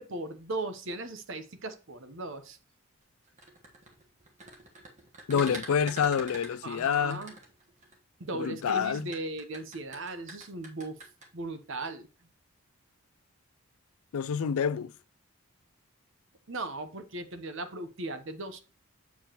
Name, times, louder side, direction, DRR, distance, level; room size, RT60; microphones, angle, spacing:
voice 1, 0.0-2.6 5.3-5.6 6.6-7.4 8.2-11.0 11.3-12.1 16.5-18.6, right 2 dB, 55° right, 0.9 m, -38 dB
sound 1, 3.3-7.9 8.7-11.3, right 2 dB, 35° right, 1.3 m, -45 dB
voice 2, 5.3-7.2 8.3-9.1 14.1-14.9, left 7 dB, 75° left, 0.4 m, -27 dB
7.1 x 7.0 x 2.9 m
head